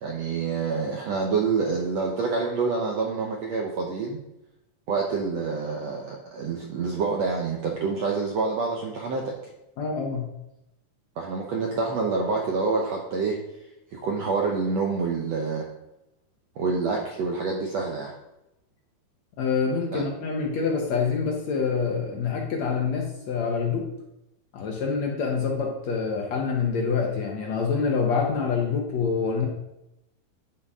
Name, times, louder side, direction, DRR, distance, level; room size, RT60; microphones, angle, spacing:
voice 1, 0.0-4.2 4.9-9.4 11.2-13.4 13.9-15.6 16.6-18.1 19.9-20.0, right 4 dB, 85° right, 0 dB, 1.4 m, -27 dB
voice 2, 9.8-10.3 19.4-23.9 24.5-29.5, left 5 dB, 65° left, 0 dB, 1.8 m, -26 dB
10.5 x 8.6 x 3.7 m, 0.87 s
omnidirectional pair, 4.6 m